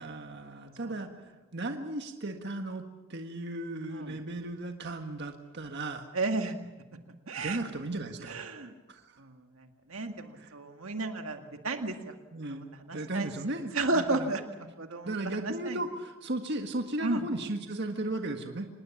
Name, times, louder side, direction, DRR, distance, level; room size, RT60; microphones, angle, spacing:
voice 1, 0.0-2.8 3.1-6.1 7.4-8.4 8.9-9.2 10.4-10.5 12.3-14.3 15.0-18.7, right 2 dB, 55° right, 5 dB, 1.7 m, -36 dB
voice 2, 6.1-6.5 7.3-7.6 8.2-8.7 9.2-12.1 12.4-13.3 13.7-15.8 17.0-17.2, right 2 dB, 80° right, 5 dB, 1.9 m, -33 dB
26.0 x 20.5 x 7.2 m, 1.2 s
head